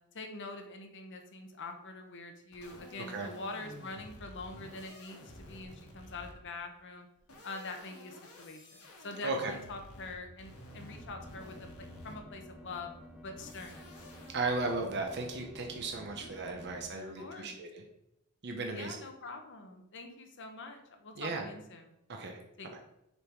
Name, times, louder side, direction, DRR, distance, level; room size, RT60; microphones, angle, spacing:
voice 1, 0.1-7.1 7.4-12.9 13.2-13.9 16.1-16.7 17.2-17.6 18.7-21.9 22.6-22.8, left 3 dB, 55° left, 4 dB, 1.1 m, -45 dB
sound 1, 2.5-6.6 7.2-12.4 13.4-14.4, left 1 dB, 90° left, 1.7 m, -52 dB
sound 2, 10.7-16.9, equal, 5° right, 0.6 m, -52 dB
voice 2, 14.3-17.8 18.4-19.0 21.2-21.5 22.1-22.4 22.7-22.8, right 3 dB, 50° right, 2 dB, 0.8 m, -35 dB
6.8 x 3.8 x 4.6 m, 0.85 s
head